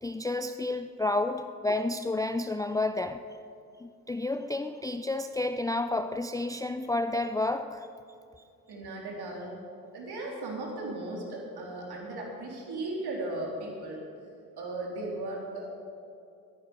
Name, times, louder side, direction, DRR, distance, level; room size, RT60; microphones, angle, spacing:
voice 1, 0.0-3.2 3.8-7.9, left 2 dB, 10° left, 8 dB, 0.5 m, -30 dB
voice 2, 8.7-9.6 9.9-14.1 14.6-15.7, right 2 dB, 55° right, -2 dB, 3.8 m, -36 dB
21.0 x 10.5 x 5.1 m, 2.6 s
figure-of-eight pair, 40°, 46 cm